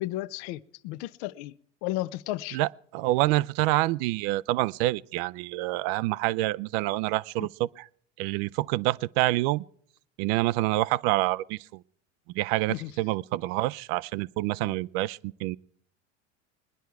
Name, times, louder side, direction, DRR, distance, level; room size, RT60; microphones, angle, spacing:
voice 1, 0.0-1.5 1.8-2.6 12.7-12.9 14.6-14.7, left 16 dB, 60° left, 0.6 m, -33 dB
voice 2, 2.5-7.8 8.2-9.6 10.2-11.6 12.4-15.6, right 18 dB, 60° right, 0.5 m, -27 dB
21.0 x 10.0 x 4.7 m
hypercardioid pair, 90°, 36 cm